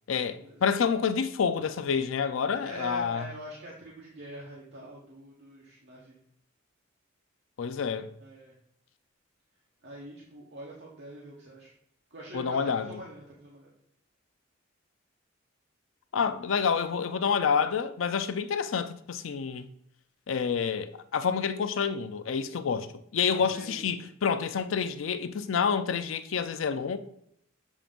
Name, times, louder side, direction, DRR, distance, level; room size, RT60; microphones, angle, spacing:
voice 1, 0.1-3.3 7.6-8.1 12.3-13.0 16.1-19.7 20.3-22.9 23.1-27.0, left 6 dB, 85° left, 0.5 m, -28 dB
voice 2, 2.6-6.2 8.2-8.5 9.8-11.7 12.1-13.7 16.2-16.3 23.5-23.8, right 1 dB, 60° right, 1.0 m, -44 dB
7.2 x 2.5 x 5.1 m
head